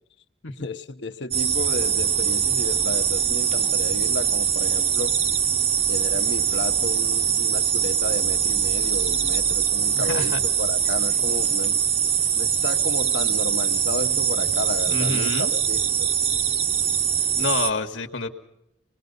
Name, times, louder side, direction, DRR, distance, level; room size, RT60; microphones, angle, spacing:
voice 1, 0.6-5.2 5.9-11.8 12.4-16.1, left 3 dB, 70° left, 1.0 m, -33 dB
sound 1, 1.3-17.7, right 8 dB, 35° right, 0.9 m, -23 dB
voice 2, 9.9-10.4 14.9-15.5 17.4-18.3, left 3 dB, 90° left, 1.7 m, -28 dB
25.5 x 20.5 x 5.4 m
head